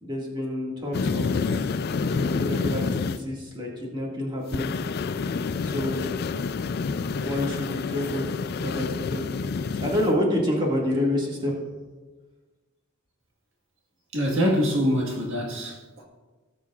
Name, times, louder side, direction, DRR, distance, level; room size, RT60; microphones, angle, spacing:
voice 1, 0.0-1.4 2.1-4.7 5.6-6.1 7.2-8.3 8.6-9.2 9.8-11.6, left 1 dB, 25° right, -3 dB, 2.0 m, -28 dB
sound 1, 0.9-3.2 4.5-10.1, left 4 dB, 50° left, 0.4 m, -28 dB
voice 2, 14.1-16.0, equal, 70° right, -1 dB, 1.7 m, -24 dB
17.5 x 7.1 x 2.4 m, 1.3 s
head